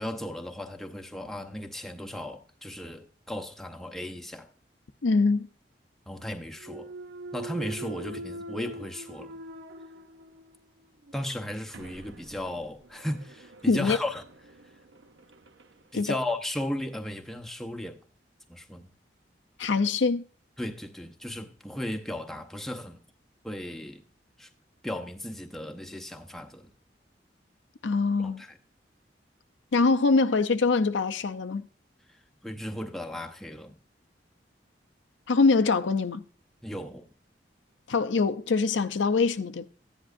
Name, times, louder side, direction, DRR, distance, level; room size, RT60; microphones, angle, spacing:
voice 1, 0.0-4.5 6.1-6.9 7.3-9.4 11.1-14.2 15.9-18.0 18.5-18.9 20.6-23.0 23.4-24.0 24.4-24.5 24.8-26.7 28.2-28.6 32.4-33.8 36.6-37.1, left 1 dB, ahead, 0.7 m, -36 dB
voice 2, 5.0-5.5 13.7-14.0 15.9-16.2 19.6-20.2 27.8-28.4 29.7-31.6 35.3-36.2 37.9-39.7, left 4 dB, 90° left, 0.6 m, -24 dB
Thump thud, 6.6-10.6 11.1-15.7, right 2 dB, 80° right, 0.6 m, -43 dB
14.5 x 10.0 x 2.6 m
head